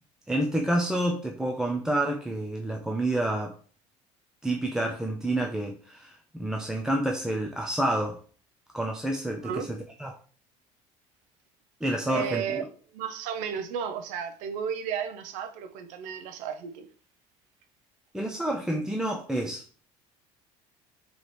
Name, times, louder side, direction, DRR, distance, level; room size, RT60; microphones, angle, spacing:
voice 1, 0.3-3.5 4.4-8.2 8.7-10.1 11.8-12.6 18.1-19.6, right 1 dB, 5° right, 0.4 m, -29 dB
voice 2, 9.4-9.8 12.0-16.9, right 7 dB, 75° right, 0.6 m, -33 dB
4.0 x 3.0 x 3.2 m
cardioid pair, 140°, 13 cm